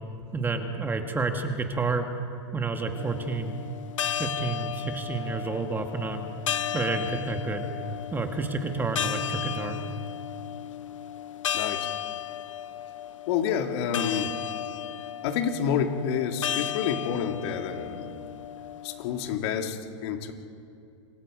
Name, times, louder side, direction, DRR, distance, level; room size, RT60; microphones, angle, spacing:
voice 1, 0.3-2.1 2.5-3.6 4.2-6.3 6.7-7.7 8.1-9.8, right 4 dB, 10° right, 5 dB, 1.8 m, -29 dB
sound 1, 3.0-19.4, left 10 dB, 90° left, 1.1 m, -34 dB
voice 2, 11.5-11.9 13.3-14.4 15.2-18.1 18.8-20.3, left 7 dB, 55° left, 4 dB, 2.6 m, -29 dB
28.5 x 24.0 x 5.1 m, 2.6 s
hypercardioid pair, 135°, 16 cm